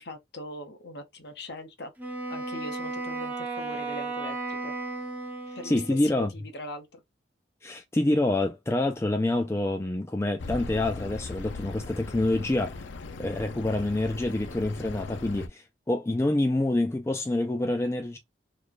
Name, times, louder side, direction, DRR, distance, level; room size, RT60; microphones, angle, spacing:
voice 1, 0.0-1.9 2.3-4.7 5.6-6.9, left 2 dB, 60° left, 0.9 m, -40 dB
Wind instrument woodwind instrument, 2.0-6.1, right 3 dB, 10° right, 0.9 m, -34 dB
voice 2, 5.6-6.3 7.6-12.8 13.2-18.2, left 2 dB, 15° left, 0.3 m, -27 dB
Accelerating revving vroom, 10.4-15.5, left 3 dB, 80° left, 0.5 m, -39 dB
3.2 x 2.2 x 3.8 m
head